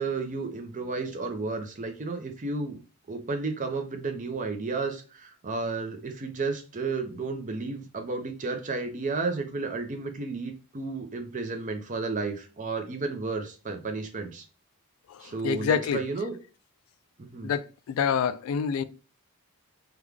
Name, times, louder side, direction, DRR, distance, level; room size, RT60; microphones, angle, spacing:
voice 1, 0.0-2.8 3.1-14.4 15.2-16.4 17.2-17.5, right 3 dB, 35° right, 0.6 m, -32 dB
voice 2, 15.1-16.0 17.4-18.8, left 7 dB, 65° left, 0.3 m, -27 dB
3.6 x 2.3 x 3.2 m
head